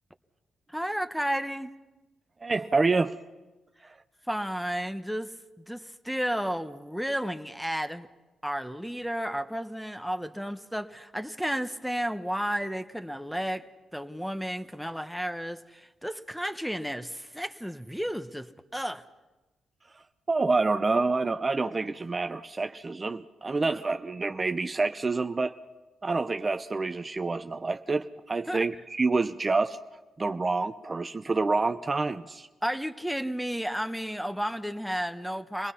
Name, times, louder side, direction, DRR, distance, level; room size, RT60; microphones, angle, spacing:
voice 1, 0.7-1.7 4.3-8.1 8.4-19.1 28.5-28.6 32.6-35.7, equal, ahead, 1.2 m, -32 dB
voice 2, 2.4-3.2 20.3-25.6 26.0-29.8 30.2-32.5, right 3 dB, 35° right, 0.7 m, -27 dB
25.5 x 19.0 x 5.7 m
supercardioid pair, 55°, 0 cm